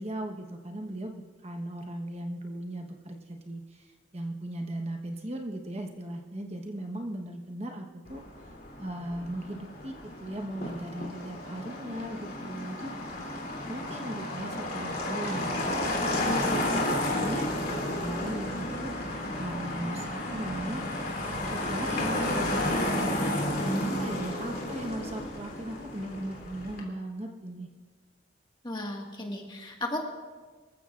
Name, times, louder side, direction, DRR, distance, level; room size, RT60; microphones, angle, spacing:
voice 1, 0.0-12.9 13.4-16.8 17.1-20.8 21.4-27.7, right 1 dB, 30° right, 3 dB, 1.1 m, -38 dB
Motor vehicle (road), 8.0-26.8, left 1 dB, 50° left, 3.1 m, -32 dB
voice 2, 28.6-30.0, left 1 dB, 25° left, 1 dB, 1.7 m, -35 dB
25.0 x 15.0 x 2.5 m, 1.4 s
head